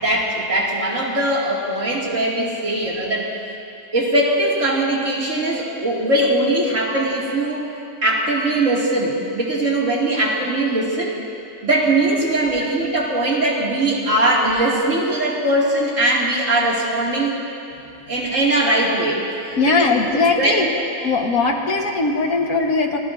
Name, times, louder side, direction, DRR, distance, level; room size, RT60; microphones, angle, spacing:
voice 1, 0.0-3.5 3.9-7.6 8.0-11.1 11.6-17.4 18.1-19.2 19.7-19.9 20.4-20.7, right 1 dB, 60° right, -4 dB, 2.7 m, -20 dB
voice 2, 19.6-20.7 21.0-23.0, left 3 dB, 75° left, 2 dB, 1.8 m, -20 dB
29.5 x 16.5 x 2.6 m, 2.7 s
omnidirectional pair, 1.5 m